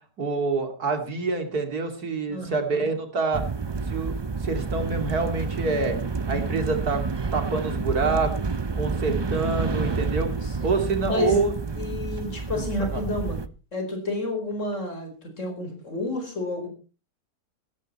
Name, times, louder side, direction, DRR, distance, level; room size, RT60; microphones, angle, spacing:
voice 1, 0.2-3.4 3.8-4.1 4.4-6.0 6.3-7.0 7.3-8.4 8.7-10.3 10.6-11.5 12.6-13.0, right 4 dB, 80° right, 6 dB, 3.0 m, -26 dB
voice 2, 2.3-2.9 9.6-10.0 11.0-11.4 11.7-13.4 13.7-16.7, left 2 dB, 55° left, 5 dB, 5.0 m, -30 dB
sound 1, 3.3-13.5, right 4 dB, 40° right, 0.3 m, -29 dB
15.5 x 13.5 x 4.3 m, 0.35 s
omnidirectional pair, 1.6 m